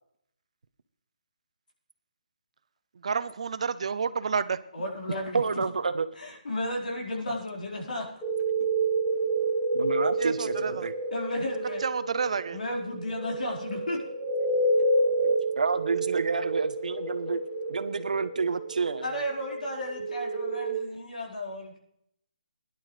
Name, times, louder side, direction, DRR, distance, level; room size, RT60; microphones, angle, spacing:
voice 1, 3.0-4.6 10.2-10.9 11.8-12.6, right 5 dB, 50° right, 14 dB, 0.6 m, -29 dB
voice 2, 4.7-5.6 6.2-8.0 11.1-11.8 12.5-14.0 19.0-21.8, left 1 dB, 75° left, -2 dB, 4.6 m, -33 dB
voice 3, 5.3-6.0 9.0-9.1 9.7-10.9 14.4-14.5 15.2-17.4 17.7-19.0, right 4 dB, 70° right, 12 dB, 1.0 m, -29 dB
sound 1, 8.2-20.8, right 2 dB, 5° left, 2.2 m, -29 dB
17.5 x 11.0 x 3.3 m, 0.72 s
hypercardioid pair, 170°, 4 cm